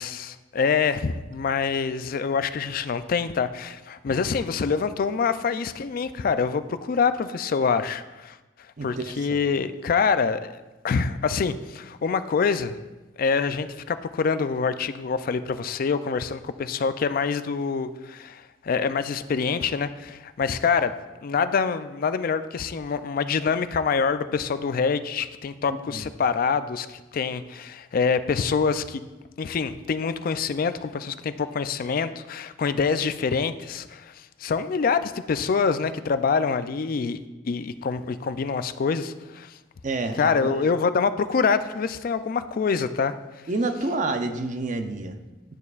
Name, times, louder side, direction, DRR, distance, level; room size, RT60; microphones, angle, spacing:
voice 1, 0.0-8.4 8.8-10.6 10.8-12.8 13.2-20.9 21.2-29.0 29.4-37.2 37.4-39.6 40.1-43.1, left 5 dB, 50° left, 12 dB, 0.4 m, -25 dB
voice 2, 8.8-9.4 25.9-26.0 39.8-40.6 43.5-45.2, right 2 dB, 45° right, 7 dB, 0.5 m, -29 dB
10.5 x 6.8 x 2.4 m, 1.1 s
head